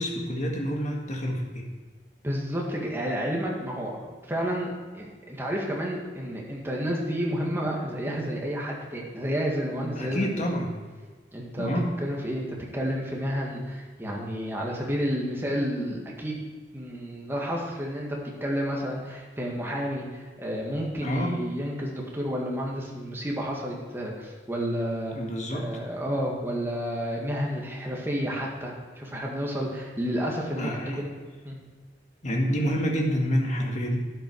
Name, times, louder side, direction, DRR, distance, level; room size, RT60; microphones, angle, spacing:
voice 1, 0.0-1.7 9.7-10.7 11.6-12.0 21.0-21.4 25.2-25.7 30.6-31.1 32.2-34.0, equal, 40° left, 1 dB, 1.9 m, -28 dB
voice 2, 2.2-10.6 11.3-11.7 12.0-16.5 16.7-18.1 18.4-25.2 25.5-31.1 31.4-31.6, equal, 15° right, -2 dB, 2.0 m, -31 dB
12.0 x 9.4 x 4.8 m, 1.5 s
head